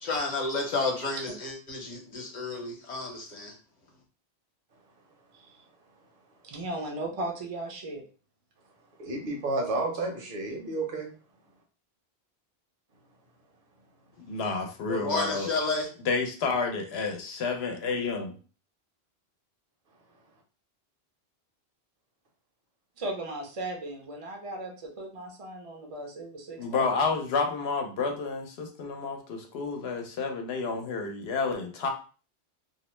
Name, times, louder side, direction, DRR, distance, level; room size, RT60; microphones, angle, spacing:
voice 1, 0.0-3.5 14.9-15.9, left 3 dB, 45° left, 0 dB, 0.9 m, -31 dB
voice 2, 6.4-8.0 23.0-26.9, right 1 dB, 40° right, 2 dB, 0.6 m, -37 dB
voice 3, 9.0-11.1, right 2 dB, 55° right, 1 dB, 0.9 m, -31 dB
voice 4, 14.3-15.5 16.1-18.3 26.6-31.9, left 4 dB, 70° left, 3 dB, 0.9 m, -30 dB
2.6 x 2.0 x 3.0 m, 0.37 s
omnidirectional pair, 1.1 m